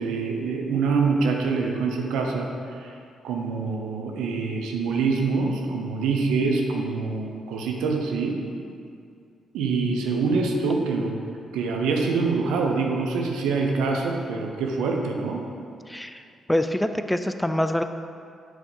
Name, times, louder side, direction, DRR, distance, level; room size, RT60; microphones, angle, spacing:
voice 1, 0.0-2.5 2.8-2.9 3.2-8.4 9.5-11.2 11.5-15.4, right 4 dB, 85° right, 1 dB, 0.7 m, -25 dB
voice 2, 15.9-16.2 16.5-17.8, left 1 dB, 5° left, 8 dB, 0.3 m, -25 dB
6.0 x 3.7 x 5.4 m, 2.3 s
supercardioid pair, 55°, 0 cm